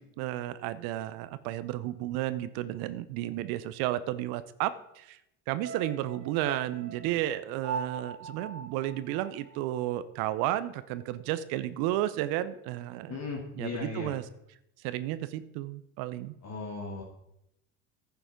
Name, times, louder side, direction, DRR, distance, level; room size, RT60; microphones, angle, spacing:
voice 1, 0.0-5.2 5.5-13.2 13.5-14.3 14.8-16.3, right 14 dB, 65° right, 14 dB, 0.7 m, -32 dB
sound 1, 5.6-10.0 10.3-10.4, right 5 dB, 35° right, 2.0 m, -41 dB
voice 2, 13.1-14.1 16.4-17.0, left 4 dB, 40° left, 0 dB, 1.9 m, -36 dB
10.5 x 7.0 x 5.1 m, 0.81 s
hypercardioid pair, 80°, 41 cm